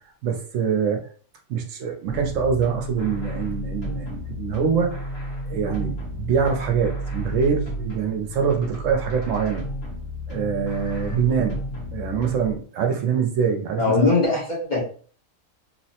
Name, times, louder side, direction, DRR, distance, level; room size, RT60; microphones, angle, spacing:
voice 1, 0.2-1.0 1.5-4.9 5.5-9.6 10.3-11.6 11.9-14.1, right 7 dB, 75° right, 3 dB, 0.9 m, -24 dB
sound 1, 2.1-12.6, equal, 75° left, 1.3 m, -32 dB
voice 2, 13.8-14.8, left 4 dB, 40° left, -5 dB, 1.0 m, -20 dB
3.0 x 2.1 x 2.8 m, 0.43 s
omnidirectional pair, 1.4 m